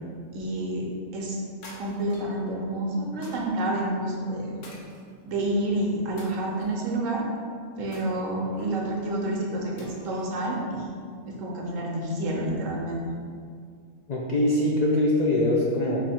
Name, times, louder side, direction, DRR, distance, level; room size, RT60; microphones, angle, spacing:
voice 1, 0.3-0.9 1.1-1.4 1.8-4.6 5.2-7.3 7.8-10.9 11.3-13.1, right 1 dB, 85° right, -2 dB, 1.2 m, -29 dB
sound 1, 1.6-2.4 3.2-3.7 4.6-5.5 6.2-6.9 7.9-8.8 9.8-10.3, left 1 dB, 70° left, 1.1 m, -47 dB
voice 2, 14.1-16.0, left 1 dB, 85° left, -3 dB, 0.3 m, -23 dB
4.5 x 2.6 x 4.2 m, 2.1 s
omnidirectional pair, 1.3 m